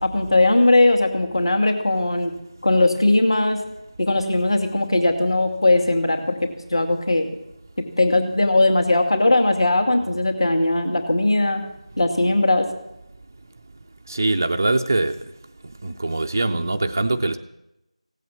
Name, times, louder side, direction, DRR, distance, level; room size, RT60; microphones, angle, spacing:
voice 1, 0.0-2.3 2.6-3.6 4.0-7.3 7.8-11.6 12.0-12.7, left 2 dB, 45° left, 5 dB, 2.4 m, -19 dB
voice 2, 14.1-15.2 15.8-17.4, right 2 dB, 25° right, 6 dB, 0.5 m, -22 dB
16.5 x 8.3 x 9.8 m, 0.87 s
figure-of-eight pair, 170°, 4 cm